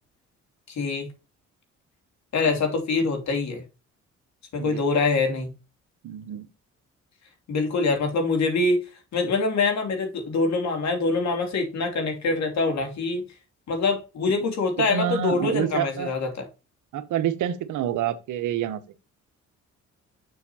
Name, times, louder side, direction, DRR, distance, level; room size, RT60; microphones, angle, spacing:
voice 1, 0.7-1.1 2.3-3.6 4.5-5.5 7.5-8.8 9.1-13.2 13.7-16.3, left 3 dB, 65° left, 2.8 m, -24 dB
voice 2, 6.0-6.5 14.8-16.1 16.9-18.8, right 10 dB, 80° right, 1.0 m, -27 dB
6.9 x 6.8 x 2.8 m
cardioid pair, 90°, 30 cm